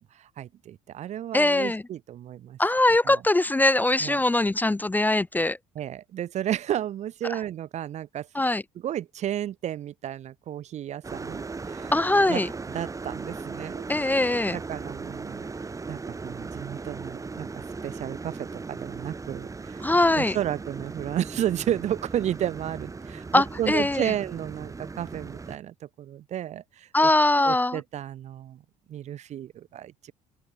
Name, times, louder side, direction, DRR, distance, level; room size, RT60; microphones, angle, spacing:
voice 1, 0.1-2.6 3.1-3.2 4.0-4.2 5.8-8.3 8.8-11.4 11.7-11.9 12.3-12.4 12.7-13.9 14.5-15.4 15.9-19.8 20.2-27.1 27.4-28.6 28.9-30.1, right 11 dB, 50° right, 0.5 m, -32 dB
voice 2, 1.3-1.8 2.6-5.6 8.3-8.6 11.9-12.5 13.9-14.6 19.8-20.4 23.3-24.1 26.9-27.8, left 2 dB, 10° left, 0.5 m, -22 dB
Electric Water Kettle Finale, 11.0-25.6, right 4 dB, 20° right, 0.9 m, -38 dB
open air
hypercardioid pair, 65°, 15 cm